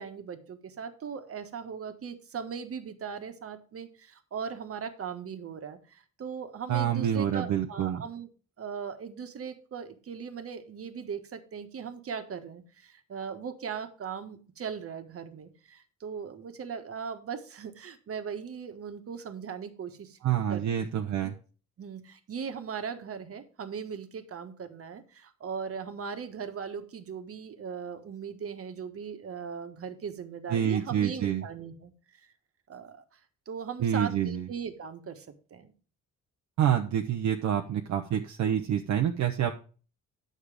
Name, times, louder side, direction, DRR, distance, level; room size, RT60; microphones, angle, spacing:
voice 1, 0.0-8.3 8.6-20.2 20.5-20.9 21.8-32.3 32.7-33.2 33.5-35.7, right 6 dB, 50° right, 8 dB, 1.4 m, -39 dB
voice 2, 6.7-8.0 20.2-21.3 30.5-31.4 33.8-34.5 36.6-39.5, right 9 dB, 65° right, 4 dB, 0.8 m, -27 dB
9.0 x 6.5 x 4.9 m, 0.38 s
cardioid pair, 90°, 30 cm